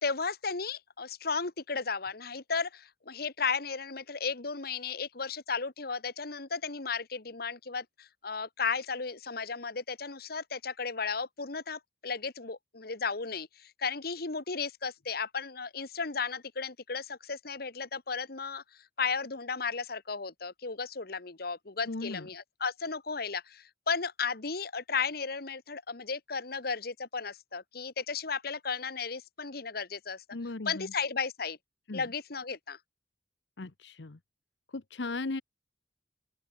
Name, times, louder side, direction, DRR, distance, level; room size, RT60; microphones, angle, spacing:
voice 1, 0.0-18.6 19.0-30.2 30.6-31.6 31.9-32.8, left 5 dB, 60° left, 1.6 m, -34 dB
voice 2, 21.9-22.3 30.3-30.9 31.9-32.1 33.6-34.2 34.7-35.4, left 3 dB, 80° left, 1.0 m, -37 dB
open air
head